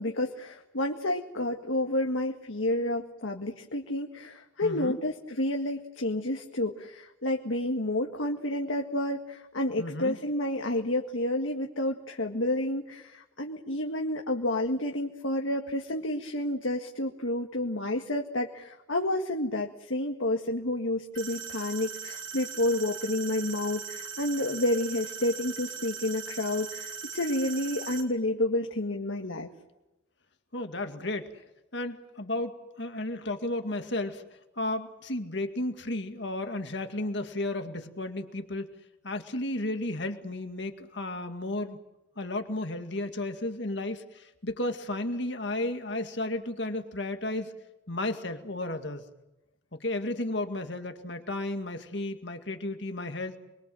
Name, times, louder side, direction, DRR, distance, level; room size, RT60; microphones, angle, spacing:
voice 1, 0.0-29.5, left 1 dB, 75° left, 2 dB, 1.9 m, -30 dB
voice 2, 4.6-5.0 9.8-10.2 30.5-31.3 31.7-34.2 34.6-38.7 39.0-41.8 42.2-47.5 47.9-49.1 49.7-53.4, left 2 dB, 60° left, 6 dB, 2.1 m, -33 dB
sound 1, 21.2-28.0, right 6 dB, 75° right, 4.8 m, -39 dB
29.0 x 22.5 x 7.8 m, 0.94 s
head